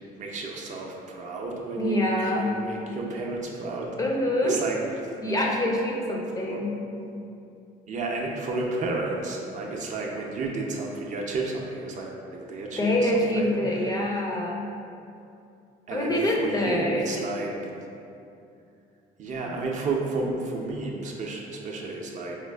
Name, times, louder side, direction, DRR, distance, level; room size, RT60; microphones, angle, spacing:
voice 1, 0.2-4.0 4.4-5.1 6.4-6.6 7.9-13.9 15.9-17.5 19.2-22.4, right 3 dB, 45° right, -1 dB, 0.5 m, -32 dB
voice 2, 1.8-2.6 4.0-4.5 5.2-6.8 12.8-14.7 15.9-17.1, left 1 dB, 20° left, -1 dB, 0.4 m, -25 dB
4.3 x 2.4 x 2.2 m, 2.6 s
cardioid pair, 110°, 17 cm